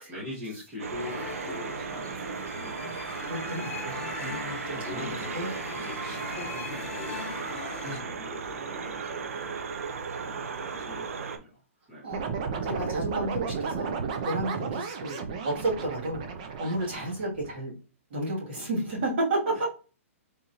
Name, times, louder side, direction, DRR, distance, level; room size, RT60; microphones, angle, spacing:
voice 1, 0.1-2.9 4.7-7.4 7.8-9.6 10.2-11.6 11.9-12.1 16.9-17.1 19.4-19.7, left 1 dB, 15° right, -8 dB, 1.0 m, -43 dB
sound 1, 0.8-11.4, right 5 dB, 75° right, 0.6 m, -36 dB
sound 2, 1.0-8.0, left 5 dB, 55° left, 0.7 m, -40 dB
voice 2, 3.3-5.1 5.3-5.5 7.8-8.0 12.0-12.3 12.7-15.2 15.4-16.2 16.6-17.7 18.1-19.6, right 1 dB, 45° right, -3 dB, 1.7 m, -32 dB
sound 3, 12.1-17.6, right 5 dB, 30° right, 0.4 m, -33 dB
3.7 x 3.0 x 2.7 m, 0.34 s
hypercardioid pair, 170°, 8 cm